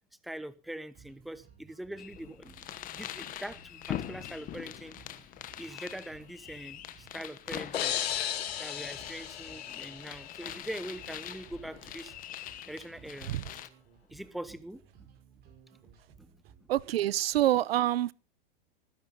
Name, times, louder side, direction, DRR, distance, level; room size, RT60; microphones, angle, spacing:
voice 1, 0.2-4.9 5.6-8.0 8.6-12.1 12.6-13.4 14.1-14.8 16.2-16.3, right 1 dB, ahead, 0.9 m, -43 dB
sound 1, 0.9-16.9, right 6 dB, 30° right, 5.7 m, -58 dB
sound 2, 2.0-13.7, left 12 dB, 30° left, 1.2 m, -43 dB
sound 3, 7.7-10.5, left 10 dB, 85° left, 2.0 m, -35 dB
voice 2, 16.7-18.1, right 13 dB, 75° right, 0.8 m, -26 dB
20.5 x 11.0 x 3.9 m
hypercardioid pair, 135°, 30 cm